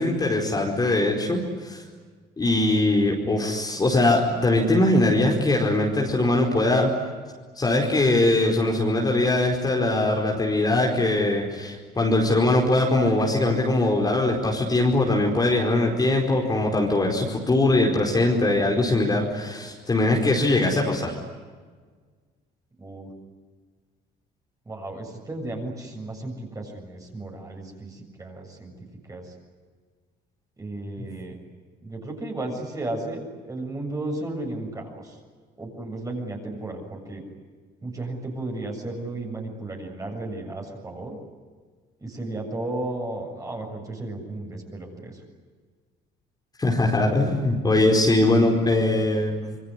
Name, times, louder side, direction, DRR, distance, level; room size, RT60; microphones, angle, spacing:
voice 1, 0.0-1.8 2.4-6.9 7.6-21.1 31.0-31.1 46.6-49.6, left 2 dB, 25° left, 0 dB, 4.7 m, -21 dB
voice 2, 22.8-23.1 24.7-28.7 29.1-29.3 30.6-31.4 31.8-35.2 35.6-37.2 37.8-41.2 42.0-45.2, right 2 dB, 20° right, 1 dB, 7.3 m, -34 dB
26.5 x 22.0 x 9.9 m, 1.5 s
cardioid pair, 110°, 17 cm